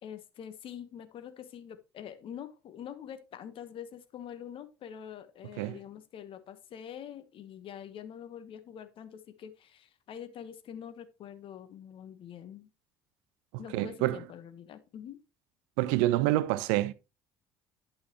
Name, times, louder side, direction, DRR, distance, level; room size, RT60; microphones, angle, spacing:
voice 1, 0.0-12.7 13.6-15.2, left 9 dB, 55° left, 1.2 m, -45 dB
voice 2, 13.7-14.2 15.8-16.9, right 16 dB, 70° right, 0.5 m, -27 dB
11.5 x 5.7 x 3.0 m
hypercardioid pair, 60°, 11 cm